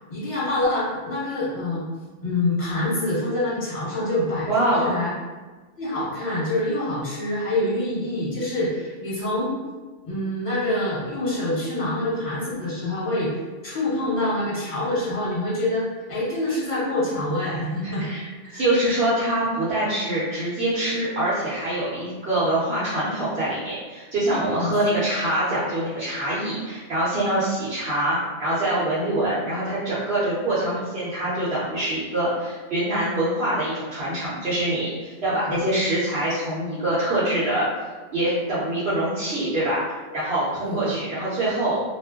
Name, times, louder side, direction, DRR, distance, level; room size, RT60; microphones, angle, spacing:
voice 1, 0.1-1.8 2.2-5.1 5.8-9.5 10.0-13.3 13.6-18.0 18.4-18.6 24.2-24.8 35.3-35.6 40.6-40.8, left 1 dB, 30° left, -8 dB, 1.1 m, -26 dB
voice 2, 4.5-5.0 17.8-18.3 18.5-37.7 38.1-41.8, right 1 dB, 55° right, -10 dB, 1.0 m, -24 dB
2.5 x 2.1 x 3.5 m, 1.3 s
omnidirectional pair, 1.2 m